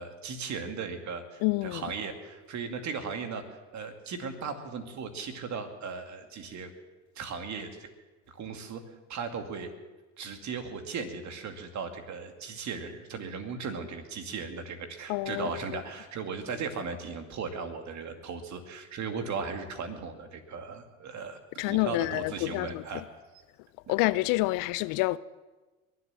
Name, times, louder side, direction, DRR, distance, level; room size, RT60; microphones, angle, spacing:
voice 1, 0.0-3.5 3.7-6.7 7.2-7.9 8.3-8.8 9.1-9.7 10.2-21.4 21.7-23.1, right 5 dB, 50° right, 2.5 m, -37 dB
voice 2, 1.4-1.8 15.1-15.5 21.6-22.8 23.9-25.2, left 20 dB, 60° left, 0.5 m, -27 dB
22.0 x 8.1 x 7.4 m
hypercardioid pair, 70°, 38 cm